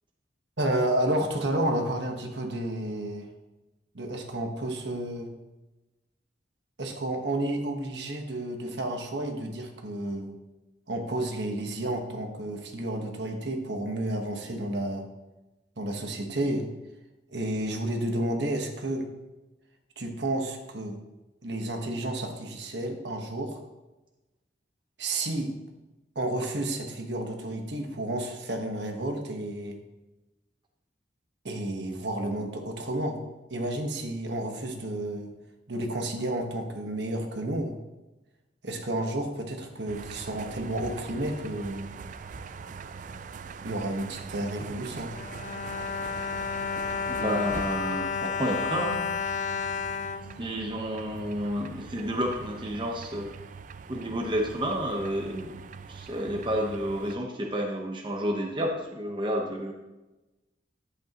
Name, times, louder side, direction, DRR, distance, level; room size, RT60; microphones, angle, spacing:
voice 1, 0.6-3.3 3.9-5.3 6.8-10.3 10.9-15.0 15.8-16.7 17.3-19.1 20.0-21.0 21.4-23.6 25.0-25.5 26.1-29.8 31.4-33.2 33.5-35.3 35.7-37.7 38.6-41.9 43.6-45.1, right 1 dB, 65° right, 3 dB, 1.3 m, -31 dB
sound 1, 39.9-57.2, right 5 dB, 45° right, 0.3 m, -42 dB
Bowed string instrument, 44.9-51.2 51.8-51.9 52.2-52.4, left 6 dB, 40° left, 0.3 m, -32 dB
voice 2, 47.1-49.1 50.4-53.3 53.9-59.7, equal, 25° right, 1 dB, 0.9 m, -30 dB
11.0 x 8.2 x 2.9 m, 1.1 s
head